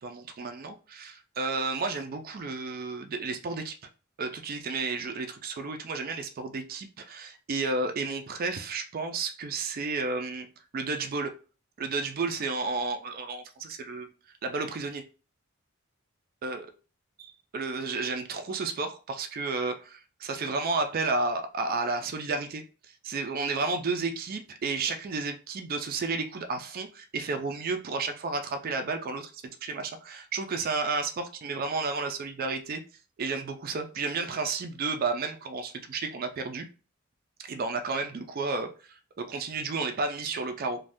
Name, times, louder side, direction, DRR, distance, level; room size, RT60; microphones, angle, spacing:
voice 1, 0.0-3.7 4.2-10.5 10.7-11.3 11.8-14.1 14.4-15.0 16.4-16.7 17.2-22.6 23.0-32.8 33.2-36.6 37.4-40.8, right 3 dB, 45° right, 0.4 m, -32 dB
2.6 x 2.2 x 3.3 m
head